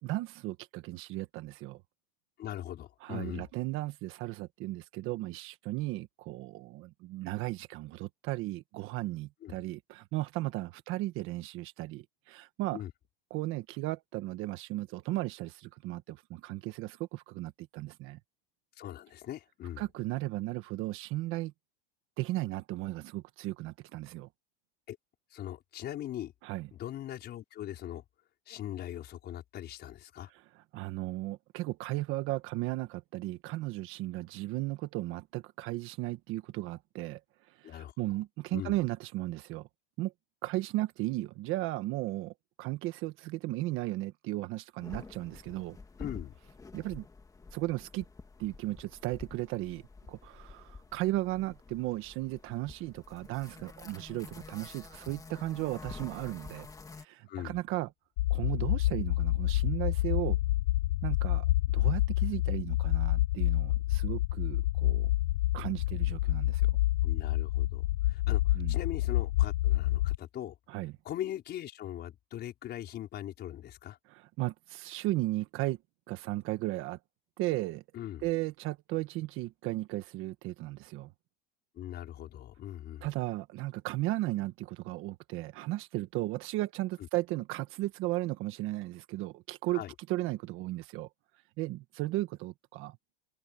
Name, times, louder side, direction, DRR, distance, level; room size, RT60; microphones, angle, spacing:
voice 1, 0.0-1.8 3.0-12.8 13.3-18.2 19.8-21.5 22.2-24.3 26.4-26.7 30.5-37.2 37.6-39.7 40.0-40.1 40.4-45.8 46.7-47.0 47.5-48.0 48.4-49.8 50.1-56.7 57.0-57.9 58.3-60.4 61.0-61.4 61.7-65.1 65.5-66.7 68.5-68.8 70.7-70.9 74.1-75.8 76.1-77.0 77.4-77.8 78.2-81.1 83.0-89.8 90.1-91.1 91.6-93.0, right 18 dB, 40° right, 1.3 m, -35 dB
voice 2, 2.4-3.5 9.4-9.6 12.7-12.9 18.8-19.8 24.9-25.0 25.3-26.3 26.7-28.0 28.5-30.3 37.6-37.9 38.5-38.7 46.0-46.4 57.3-57.6 67.0-70.6 71.1-74.0 77.9-78.2 81.8-83.1 89.7-89.9, left 12 dB, 30° left, 5.3 m, -40 dB
sound 1, 44.8-57.0, left 4 dB, 10° left, 3.1 m, -49 dB
sound 2, 58.2-70.2, left 16 dB, 75° left, 0.8 m, -28 dB
supercardioid pair, 150°, 31 cm